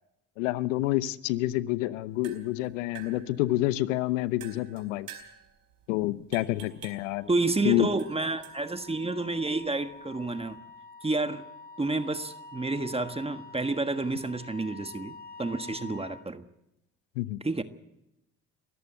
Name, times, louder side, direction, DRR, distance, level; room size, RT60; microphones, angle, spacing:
voice 1, 0.4-5.1 5.9-7.3 7.6-7.9 17.2-17.4, left 17 dB, 85° left, 0.8 m, -28 dB
sound 1, 2.0-10.6, right 9 dB, 65° right, 4.5 m, -52 dB
Wind instrument woodwind instrument, 6.8-16.3, left 3 dB, 25° left, 2.1 m, -48 dB
voice 2, 7.3-10.6 11.0-11.4 11.8-16.4 17.4-17.6, right 3 dB, 15° right, 1.5 m, -30 dB
23.0 x 14.0 x 8.0 m
hypercardioid pair, 60°, 36 cm